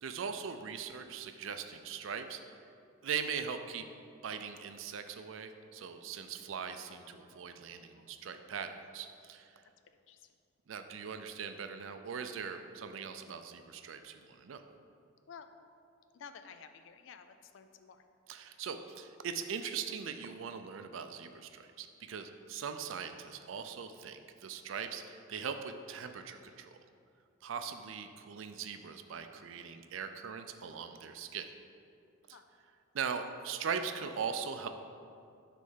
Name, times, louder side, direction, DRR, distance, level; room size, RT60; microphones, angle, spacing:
voice 1, 0.0-2.4 3.0-3.8 4.2-9.6 10.7-14.6 18.3-26.8 27.4-31.5 32.9-34.7, right 6 dB, 75° right, 8 dB, 0.4 m, -40 dB
voice 2, 9.9-10.3 15.3-15.5 16.1-18.0 32.3-32.4, left 6 dB, 70° left, 9 dB, 0.4 m, -53 dB
6.2 x 3.4 x 5.6 m, 2.4 s
head